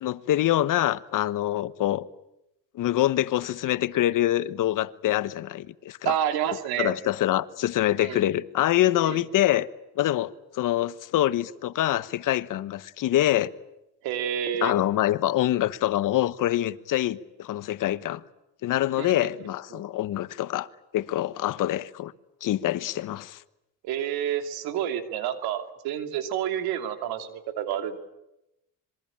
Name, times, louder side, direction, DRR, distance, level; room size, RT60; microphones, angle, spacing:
voice 1, 0.0-2.1 2.7-6.1 6.8-9.7 10.0-13.5 14.6-18.2 18.6-20.7 20.9-22.1 22.4-23.4, left 13 dB, 60° left, 1.2 m, -25 dB
voice 2, 6.0-6.9 8.0-8.2 9.1-9.2 14.0-14.7 19.0-19.2 19.7-19.8 23.8-28.0, right 9 dB, 85° right, 3.0 m, -29 dB
26.0 x 22.5 x 8.9 m
cardioid pair, 115°, 36 cm